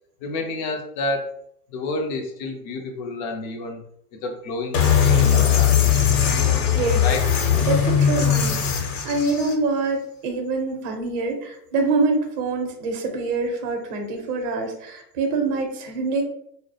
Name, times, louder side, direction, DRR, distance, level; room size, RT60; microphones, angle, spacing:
voice 1, 0.2-1.3 1.7-3.8 4.2-6.1 7.0-7.2, left 3 dB, 35° left, 3 dB, 0.4 m, -29 dB
sound 1, 4.7-9.5, left 8 dB, 65° left, 0.8 m, -19 dB
voice 2, 6.3-7.0 7.7-16.2, right 3 dB, 40° right, 4 dB, 0.7 m, -25 dB
2.2 x 2.0 x 2.7 m, 0.71 s
hypercardioid pair, 105°, 50 cm